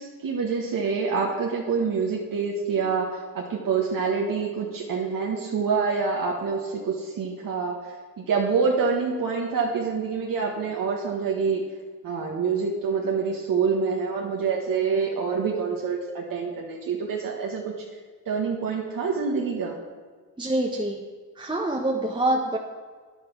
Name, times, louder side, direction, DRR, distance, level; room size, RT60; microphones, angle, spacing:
voice 1, 0.0-11.6 12.0-17.7 18.2-19.8, right 5 dB, 55° right, -1 dB, 1.7 m, -26 dB
voice 2, 20.4-21.0 21.4-22.6, right 1 dB, 10° right, 0 dB, 1.3 m, -25 dB
9.3 x 8.6 x 6.2 m, 1.5 s
supercardioid pair, 75°, 40 cm